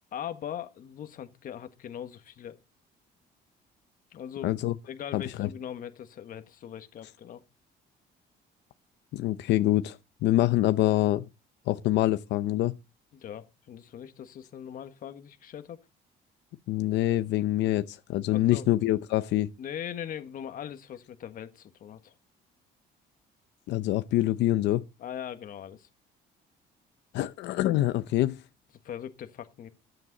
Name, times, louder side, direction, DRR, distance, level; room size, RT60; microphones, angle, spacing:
voice 1, 0.1-2.6 4.1-4.6 4.9-7.4 13.1-15.8 18.3-18.7 19.6-22.1 25.0-25.9 28.8-29.7, left 9 dB, 50° left, 1.5 m, -40 dB
voice 2, 4.4-4.7 5.1-5.5 9.1-11.3 11.7-12.7 16.7-19.5 23.7-24.8 27.1-28.4, left 15 dB, 85° left, 0.7 m, -25 dB
14.5 x 10.5 x 4.0 m
cardioid pair, 150°, 18 cm